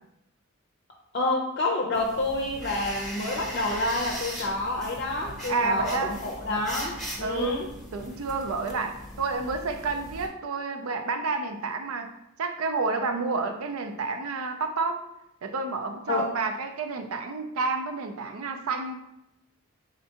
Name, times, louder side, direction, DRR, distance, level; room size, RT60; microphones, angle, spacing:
voice 1, 1.1-7.7 16.1-16.3, left 2 dB, 45° left, 0 dB, 0.5 m, -28 dB
sound 1, 1.9-10.3, equal, ahead, 0.8 m, -39 dB
voice 2, 5.5-6.2 7.2-7.6 7.9-12.1 12.4-15.0 15.4-18.9, right 3 dB, 80° right, 6 dB, 0.5 m, -30 dB
4.4 x 3.6 x 2.8 m, 0.86 s
head